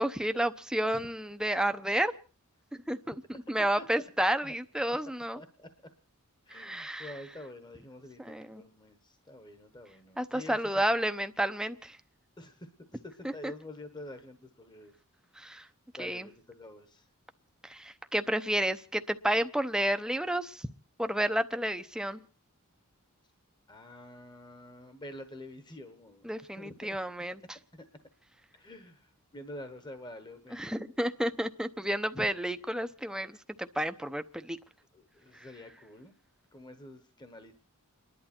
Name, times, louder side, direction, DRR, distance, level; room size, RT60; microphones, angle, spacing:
voice 1, 0.0-2.1 2.9-3.2 3.5-5.4 6.5-7.1 8.2-8.6 10.2-12.0 13.2-13.5 15.4-15.6 16.0-16.3 17.6-20.7 21.0-22.2 26.2-27.6 30.5-34.6, right 1 dB, 5° right, 9 dB, 0.7 m, -31 dB
voice 2, 5.3-5.7 6.5-9.0 9.3-10.6 12.4-12.5 12.9-14.9 16.0-17.0 23.7-26.3 26.6-26.7 28.6-29.0 29.3-30.6 32.1-32.3 34.9-36.1 36.5-37.5, left 1 dB, 20° left, 8 dB, 1.2 m, -47 dB
29.5 x 11.5 x 4.4 m, 0.39 s
head